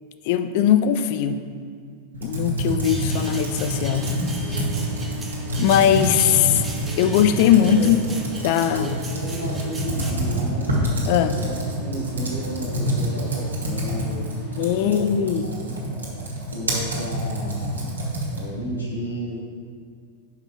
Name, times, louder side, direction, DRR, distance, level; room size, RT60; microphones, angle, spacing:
voice 1, 0.2-1.4 2.2-4.1 4.5-4.6 5.6-6.6 7.0-8.0 8.4-8.9 11.1-11.4 14.6-15.5, left 9 dB, 50° left, 10 dB, 0.4 m, -20 dB
Computer keyboard, 2.1-18.6, right 1 dB, 75° right, 1.6 m, -27 dB
sound 1, 2.8-10.1, right 2 dB, 15° right, 1.0 m, -38 dB
sound 2, 3.1-14.9, right 4 dB, 30° left, 1.7 m, -40 dB
voice 2, 7.6-7.9 8.7-10.7 11.3-14.3 14.7-15.1 15.4-15.7 16.5-17.9 18.3-19.4, equal, 80° left, -5 dB, 1.7 m, -33 dB
5.5 x 5.2 x 6.0 m, 2.1 s
figure-of-eight pair, 90°, 0 cm